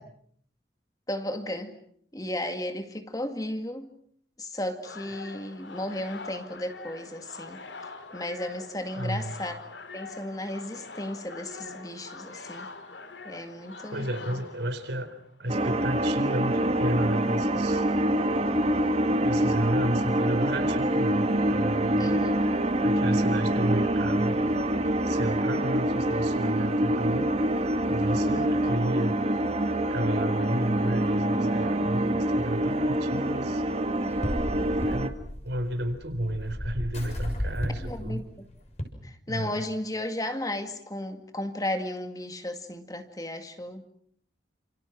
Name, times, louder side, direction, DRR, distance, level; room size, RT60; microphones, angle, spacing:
voice 1, 1.1-1.7 2.1-3.9 4.4-7.6 8.1-9.6 9.9-12.7 13.2-14.1 22.0-22.4 28.1-28.7 33.1-33.6 37.7-38.2 39.0-43.8, left 1 dB, 20° left, 7 dB, 2.1 m, -34 dB
sound 1, 4.8-15.3, left 3 dB, 80° left, 2.9 m, -44 dB
voice 2, 8.9-9.4 13.9-15.1 15.4-17.8 19.2-22.2 22.8-24.4 25.1-27.3 27.9-29.2 29.9-33.6 34.8-35.1 35.4-38.2 39.3-39.6, right 1 dB, 70° right, 8 dB, 4.4 m, -31 dB
sound 2, 15.5-35.1, right 1 dB, 35° right, 1.9 m, -26 dB
sound 3, 33.9-38.8, equal, 35° left, 6.4 m, -34 dB
30.0 x 28.0 x 6.2 m, 0.65 s
head